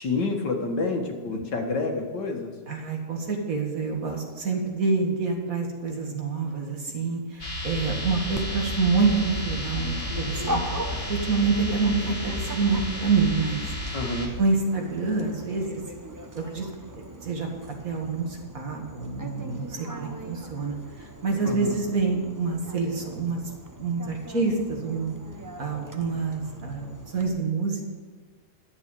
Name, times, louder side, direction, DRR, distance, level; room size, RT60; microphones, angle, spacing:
voice 1, 0.0-2.5 13.9-14.3 21.4-21.8, left 3 dB, 80° left, 3 dB, 2.1 m, -28 dB
voice 2, 2.7-10.6 11.1-13.6 14.4-15.8 16.4-16.7 17.2-17.5 17.8-23.4 23.8-25.1 25.6-27.8, right 4 dB, 55° right, 1 dB, 2.2 m, -27 dB
sound 1, 7.4-14.3, left 1 dB, 35° left, 2.2 m, -32 dB
Dog, 8.3-27.3, right 1 dB, 20° right, 0.6 m, -40 dB
12.0 x 7.1 x 8.2 m, 1.4 s
omnidirectional pair, 1.9 m